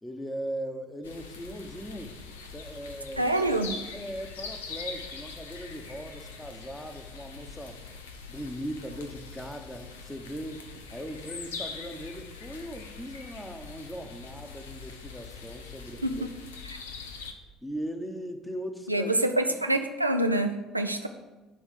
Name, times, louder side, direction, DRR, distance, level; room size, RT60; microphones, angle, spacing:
voice 1, 0.0-2.2 2.5-3.3 3.9-7.8 8.3-16.2 17.6-19.1, equal, 10° left, 6 dB, 1.1 m, -39 dB
light rain in forest, 1.0-17.3, left 5 dB, 75° left, 0.7 m, -43 dB
voice 2, 3.2-3.8 16.0-16.3 18.9-21.1, right 1 dB, 90° right, 5 dB, 0.4 m, -26 dB
11.0 x 3.6 x 6.6 m, 1.1 s
figure-of-eight pair, 60°, 0 cm